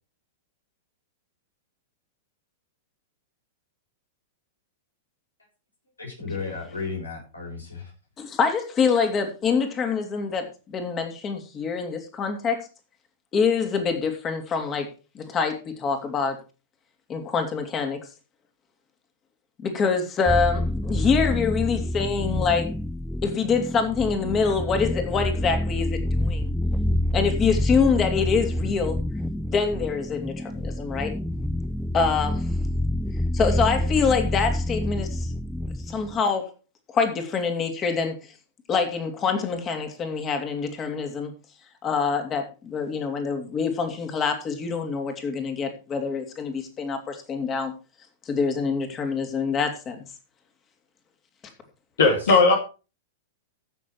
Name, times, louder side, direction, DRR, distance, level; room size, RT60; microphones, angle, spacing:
voice 1, 6.0-7.9 52.0-52.3, left 4 dB, 90° left, -1 dB, 6.7 m, -34 dB
voice 2, 8.2-12.6 13.3-14.9 15.1-16.4 17.1-18.0 19.6-22.7 23.2-26.5 27.1-29.0 29.5-31.1 31.9-32.4 33.3-35.3 35.9-36.5 36.9-38.2 38.7-41.3 41.8-47.7 48.3-50.0 52.3-52.4, left 5 dB, 30° left, 5 dB, 3.0 m, -25 dB
sound 1, 20.3-36.2, left 1 dB, 5° left, 0.5 m, -27 dB
voice 3, 52.0-52.6, left 3 dB, 70° left, 3 dB, 2.6 m, -17 dB
14.5 x 6.7 x 4.7 m, 0.33 s
figure-of-eight pair, 100°, 0 cm